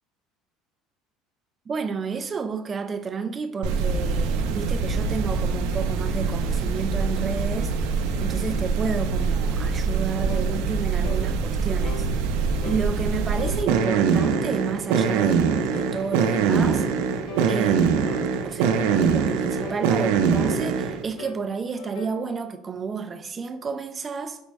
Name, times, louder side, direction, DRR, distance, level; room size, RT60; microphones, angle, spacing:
voice 1, 1.7-7.7 8.2-12.1 12.6-16.9 17.5-18.2 18.4-24.4, right 5 dB, 25° right, 0.3 m, -31 dB
sound 1, 3.6-21.0, right 5 dB, 85° right, 0.4 m, -24 dB
sound 2, 10.3-10.5 11.0-11.3 11.8-12.1 12.6-12.8 13.4-13.6 14.2-14.4 14.9-15.2 15.7-16.0 16.5-16.7 17.3-17.5 18.0-18.3 18.8-19.1 19.6-19.8 20.4-20.6 21.2-21.4 21.8-22.2, left 5 dB, 75° left, 0.7 m, -37 dB
5.1 x 2.1 x 4.7 m
cardioid pair, 145°, 0 cm